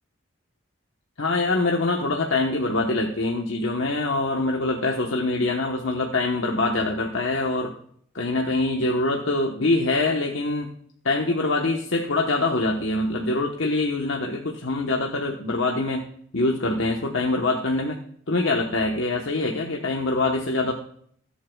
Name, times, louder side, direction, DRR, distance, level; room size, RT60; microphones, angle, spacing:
voice 1, 1.2-7.7 8.1-10.7 11.0-16.0 16.3-18.0 18.3-20.7, left 2 dB, 90° left, 1 dB, 1.2 m, -24 dB
20.0 x 8.5 x 2.4 m, 0.64 s
head